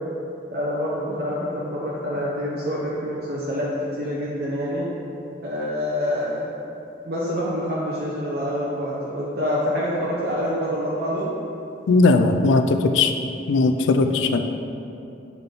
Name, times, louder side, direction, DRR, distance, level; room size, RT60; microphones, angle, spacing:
voice 1, 0.5-3.7 4.0-4.8 5.4-6.5 7.0-11.3, equal, 55° right, -6 dB, 0.7 m, -26 dB
voice 2, 11.9-12.6 12.9-13.1 13.5-14.4, left 3 dB, 75° left, 6 dB, 0.4 m, -18 dB
7.1 x 3.8 x 3.7 m, 2.8 s
head